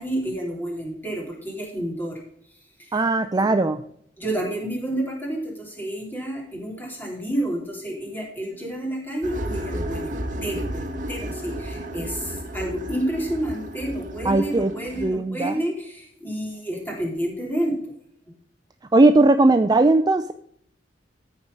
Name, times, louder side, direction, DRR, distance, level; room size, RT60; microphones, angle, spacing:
voice 1, 0.0-2.2 2.8-3.0 4.2-17.7, right 1 dB, 10° left, -2 dB, 3.5 m, -30 dB
voice 2, 2.9-3.8 14.2-14.7 15.0-15.6 18.9-20.3, right 2 dB, 20° right, 9 dB, 0.4 m, -18 dB
sound 1, 9.2-15.1, equal, 45° right, 1.4 m, -32 dB
14.0 x 4.7 x 5.2 m, 0.68 s
head